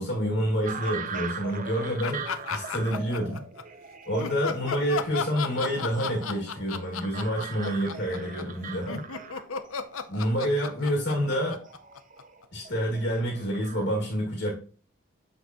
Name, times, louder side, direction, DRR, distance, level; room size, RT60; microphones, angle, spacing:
voice 1, 0.0-3.5 4.1-9.3 10.1-11.7 12.5-14.5, equal, 60° left, 2.2 m, -28 dB
sound 1, 0.7-13.9, right 5 dB, 40° right, 0.7 m, -41 dB
sound 2, 2.0-3.6 4.2-12.4, left 6 dB, 85° left, 0.7 m, -34 dB
7.6 x 6.6 x 2.9 m
head